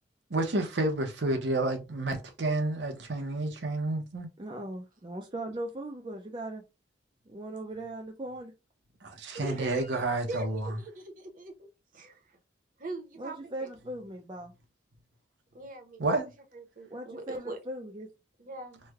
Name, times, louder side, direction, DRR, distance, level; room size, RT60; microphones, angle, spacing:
voice 1, 0.3-4.3 9.0-10.8 16.0-16.3, right 2 dB, 75° right, 0.8 m, -30 dB
voice 2, 4.4-6.6 7.3-8.5 13.2-14.5 16.9-18.1, right 1 dB, 25° right, 0.4 m, -39 dB
voice 3, 9.3-9.9 10.3-10.5 10.8-11.5 11.9-12.2 12.8-13.7 15.5-16.2 16.5-17.6 18.4-18.8, right 1 dB, 45° right, 0.8 m, -41 dB
3.2 x 2.2 x 3.4 m
head